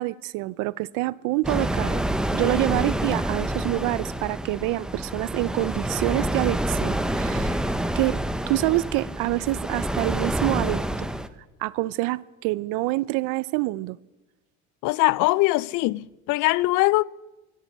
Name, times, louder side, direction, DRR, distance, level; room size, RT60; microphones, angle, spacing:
voice 1, 0.0-2.0 2.3-7.6 8.0-8.2 8.5-11.1 11.6-14.0, right 20 dB, 80° right, 0.5 m, -26 dB
sound 1, 1.4-11.3, right 1 dB, ahead, 0.4 m, -27 dB
voice 2, 14.8-17.0, left 20 dB, 70° left, 0.5 m, -22 dB
23.5 x 8.2 x 6.2 m
cardioid pair, 160°, 31 cm